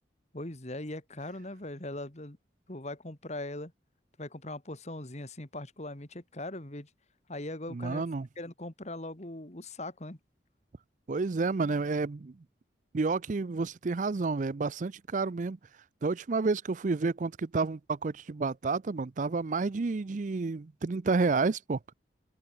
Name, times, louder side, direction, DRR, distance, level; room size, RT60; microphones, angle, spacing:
voice 1, 0.3-2.4 2.7-3.7 4.2-6.9 7.3-8.0 8.4-10.2, left 1 dB, 40° left, 2.3 m, -40 dB
voice 2, 7.7-8.3 11.1-12.3 12.9-15.6 16.0-21.8, right 4 dB, 45° right, 0.5 m, -30 dB
open air
head